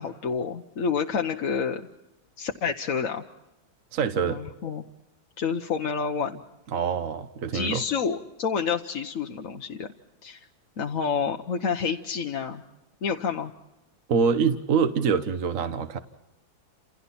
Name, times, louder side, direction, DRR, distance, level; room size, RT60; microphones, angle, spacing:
voice 1, 0.0-1.8 2.4-3.2 4.2-4.8 5.4-6.4 7.5-9.9 10.2-10.5 10.8-12.6 13.0-13.5, left 6 dB, 50° left, 3 dB, 1.2 m, -28 dB
voice 2, 3.9-4.4 6.7-7.8 14.1-16.0, right 6 dB, 50° right, 8 dB, 1.3 m, -25 dB
30.0 x 28.5 x 4.3 m, 1.0 s
omnidirectional pair, 2.1 m